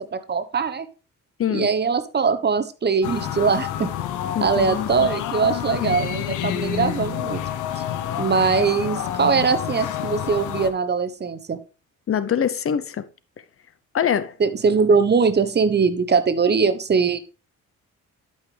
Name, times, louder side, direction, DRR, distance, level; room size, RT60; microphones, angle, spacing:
voice 1, 0.1-0.9 1.5-3.9 4.4-7.4 8.2-11.6 14.4-17.2, right 5 dB, 35° right, 1.0 m, -21 dB
voice 2, 1.4-1.7 4.3-5.1 12.1-13.0 13.9-14.3, left 8 dB, 45° left, 0.7 m, -24 dB
sound 1, 3.0-10.7, left 10 dB, 90° left, 1.0 m, -28 dB
11.5 x 5.6 x 3.3 m
cardioid pair, 90°, 30 cm